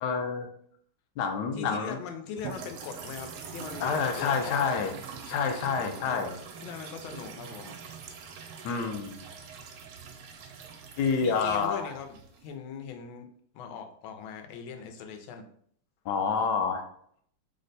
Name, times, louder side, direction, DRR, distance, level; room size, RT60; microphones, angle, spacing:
voice 1, 0.0-0.5 1.2-2.0 3.8-4.9 5.3-6.3 8.6-9.2 11.0-11.9 16.1-16.9, left 5 dB, 75° left, 4 dB, 1.0 m, -28 dB
voice 2, 1.5-4.9 6.0-7.8 9.4-9.5 11.2-13.3 13.5-15.4, left 6 dB, 90° left, 5 dB, 1.4 m, -41 dB
sound 1, 2.4-12.5, right 6 dB, 80° right, 1.4 m, -44 dB
3.5 x 2.1 x 3.9 m, 0.64 s
omnidirectional pair, 2.2 m